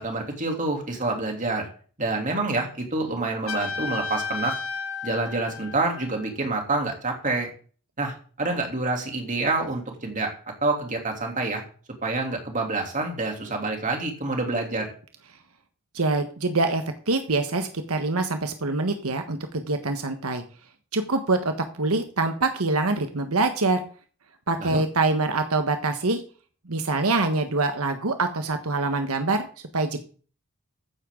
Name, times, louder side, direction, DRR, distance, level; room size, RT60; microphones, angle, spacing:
voice 1, 0.0-1.7 2.0-4.6 5.0-7.5 8.0-10.3 10.6-11.6 12.0-14.9 24.6-24.8, right 2 dB, 35° right, 2 dB, 3.2 m, -27 dB
Trumpet, 3.5-6.3, left 4 dB, 65° left, 2.7 m, -33 dB
voice 2, 15.9-20.4 20.9-23.8 24.5-26.2 26.7-29.5 29.7-30.0, right 3 dB, 85° right, 7 dB, 1.3 m, -25 dB
14.5 x 9.8 x 3.9 m, 0.41 s
head